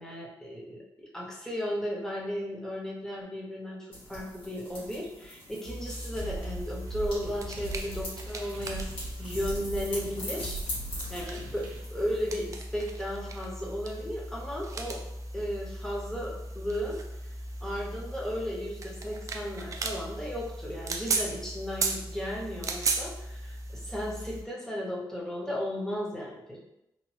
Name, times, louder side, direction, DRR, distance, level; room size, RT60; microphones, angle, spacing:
voice 1, 0.0-8.9 9.2-10.6 11.1-15.0 15.3-17.0 17.6-26.6, equal, 5° left, -3 dB, 0.7 m, -35 dB
sound 1, 3.9-12.5, left 1 dB, 85° left, 1.5 m, -43 dB
sound 2, 5.6-24.4, right 2 dB, 40° right, 0.3 m, -37 dB
sound 3, 6.2-11.8, right 3 dB, 80° right, 0.6 m, -40 dB
2.9 x 2.0 x 3.0 m, 0.87 s
cardioid pair, 115°, 8 cm